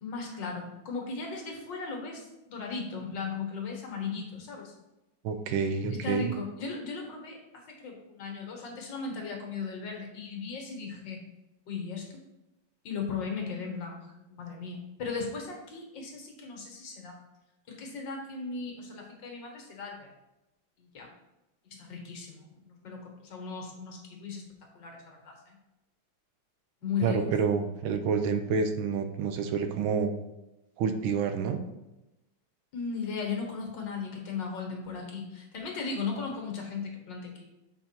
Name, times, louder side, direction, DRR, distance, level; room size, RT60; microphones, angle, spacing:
voice 1, 0.0-4.7 5.8-11.2 11.7-12.2 12.8-17.2 17.7-20.1 20.8-21.1 21.7-24.5 24.8-25.5 26.8-27.2 32.7-37.4, left 5 dB, 65° left, 1 dB, 2.0 m, -37 dB
voice 2, 5.2-6.3 27.0-30.1 30.8-31.6, right 6 dB, 85° right, 8 dB, 1.5 m, -28 dB
7.1 x 4.4 x 4.4 m, 0.96 s
omnidirectional pair, 2.2 m